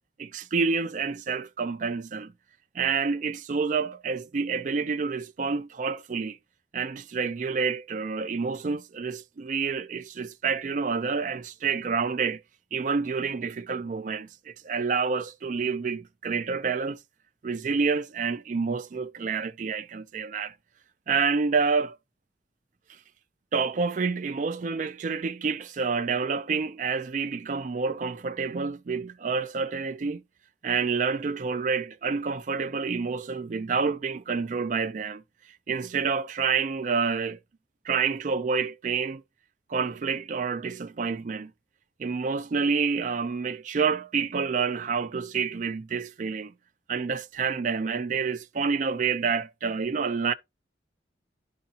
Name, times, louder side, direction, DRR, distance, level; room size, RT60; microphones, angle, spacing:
voice 1, 0.2-2.3 2.7-6.4 6.7-12.4 12.7-17.0 17.4-20.5 21.1-22.0 23.5-30.2 30.6-35.2 35.7-37.4 37.8-39.2 39.7-41.5 42.0-46.5 46.9-50.3, right 5 dB, 45° right, 0.4 m, -28 dB
11.5 x 3.9 x 2.7 m
head